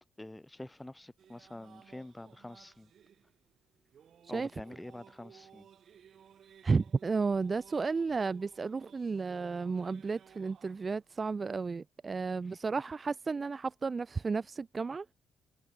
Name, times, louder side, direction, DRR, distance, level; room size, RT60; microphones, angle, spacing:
voice 1, 0.0-2.9 4.3-5.7 12.4-12.6, left 1 dB, 10° left, 2.5 m, -47 dB
sound 1, 1.2-11.4, right 8 dB, 60° right, 6.6 m, -59 dB
voice 2, 6.6-15.1, right 4 dB, 30° right, 0.5 m, -33 dB
cardioid pair, 90°, 0 cm